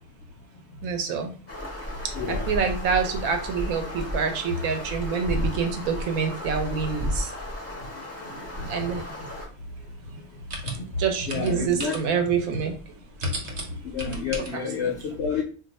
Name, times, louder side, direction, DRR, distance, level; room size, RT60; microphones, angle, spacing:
voice 1, 0.8-1.3 2.0-7.3 8.7-9.0 11.0-12.7 13.2-13.3 14.5-14.6, right 5 dB, 75° right, 5 dB, 1.0 m, -26 dB
sound 1, 1.5-9.5, left 1 dB, 20° left, 0.4 m, -33 dB
voice 2, 2.1-2.5 8.6-8.7 11.3-12.0 13.9-15.4, left 5 dB, 65° left, 0 dB, 0.6 m, -29 dB
sound 2, 9.2-14.5, right 2 dB, 55° right, 0.4 m, -39 dB
2.5 x 2.3 x 4.0 m, 0.39 s
omnidirectional pair, 1.6 m